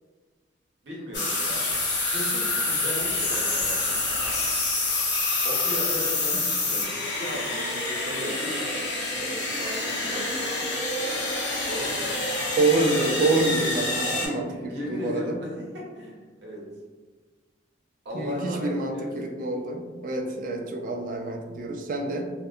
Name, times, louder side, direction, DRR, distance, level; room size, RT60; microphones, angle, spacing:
voice 1, 0.8-1.7 2.1-4.3 5.4-10.7 11.6-12.1 14.3-16.7 18.0-19.1, equal, 65° right, -3 dB, 0.7 m, -36 dB
sound 1, 1.1-14.3, left 2 dB, 70° left, 0.8 m, -27 dB
voice 2, 12.6-15.4 18.1-22.3, right 2 dB, 45° right, 3 dB, 0.3 m, -27 dB
2.3 x 2.2 x 2.7 m, 1.4 s
head